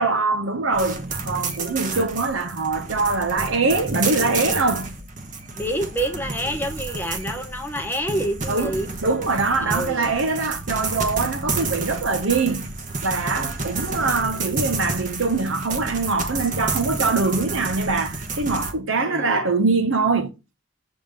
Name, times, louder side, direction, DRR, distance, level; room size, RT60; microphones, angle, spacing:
voice 1, 0.0-4.9 8.5-8.8 9.0-12.7 13.0-20.3, right 3 dB, 70° right, 0.8 m, -23 dB
sound 1, 0.7-18.7, right 3 dB, 35° right, 1.0 m, -30 dB
voice 2, 5.5-8.9 9.6-10.2 13.8-14.3 19.0-19.5, right 1 dB, 10° left, 1.1 m, -28 dB
7.1 x 3.5 x 6.4 m
head